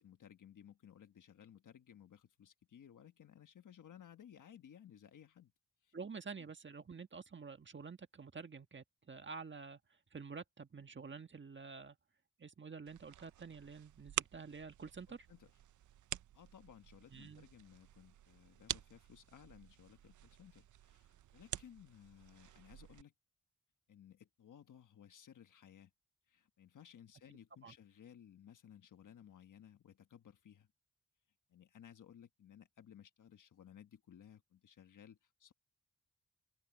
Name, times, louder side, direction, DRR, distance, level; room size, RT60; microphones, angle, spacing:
voice 1, 0.0-5.5 5.8-5.9 14.8-15.5 16.3-23.1 23.9-25.9 26.3-30.7 31.5-35.5, left 9 dB, 85° left, 1.3 m, -59 dB
voice 2, 5.9-9.8 10.1-12.0 12.4-15.3 17.1-17.5 27.6-27.7, right 5 dB, 40° right, 1.5 m, -49 dB
sound 1, 12.9-23.0, right 12 dB, 75° right, 0.5 m, -48 dB
open air
wide cardioid pair, 100°, 30 cm